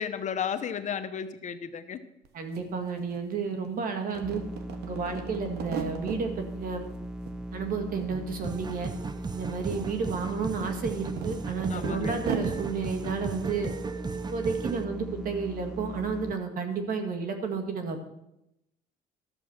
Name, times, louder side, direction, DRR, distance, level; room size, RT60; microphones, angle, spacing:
voice 1, 0.0-2.0 11.7-12.2, left 7 dB, 45° left, 10 dB, 0.9 m, -33 dB
sound 1, 2.2-2.3 2.5-3.7 4.0-6.2 6.6-7.4 7.6-8.5 8.8-8.9 9.4-12.7, right 6 dB, 75° right, 1.3 m, -38 dB
voice 2, 2.3-4.4 4.8-6.9 7.5-8.9 9.3-13.7 14.3-18.0, right 5 dB, 55° right, 5 dB, 1.9 m, -32 dB
sound 2, 4.2-16.3, right 1 dB, 5° right, 0.3 m, -38 dB
sound 3, 8.4-14.8, right 5 dB, 25° right, 0.7 m, -37 dB
12.5 x 7.1 x 6.3 m, 0.85 s
cardioid pair, 110°, 17 cm